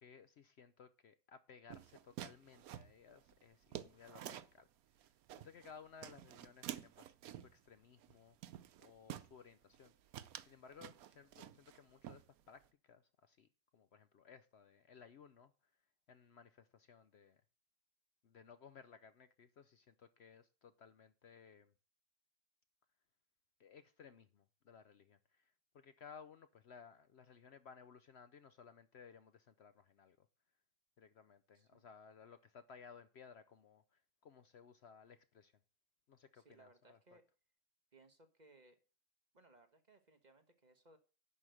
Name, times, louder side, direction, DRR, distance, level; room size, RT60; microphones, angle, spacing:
voice 1, 0.0-4.7 5.4-8.4 8.8-9.9 10.5-15.7 16.1-17.4 18.2-21.7 23.6-30.3 31.0-35.5 36.1-37.0, left 6 dB, 60° left, 0.8 m, -60 dB
sound 1, 1.7-4.6 5.0-5.7 6.0-7.6 8.0-8.2 8.4-9.3 9.7-9.9 10.1-11.8 12.0-12.7, right 11 dB, 90° right, 1.1 m, -50 dB
voice 2, 31.5-31.9 36.3-37.3 37.9-38.8 39.3-41.0, right 2 dB, 35° right, 1.2 m, -66 dB
11.0 x 5.1 x 7.8 m
omnidirectional pair, 1.5 m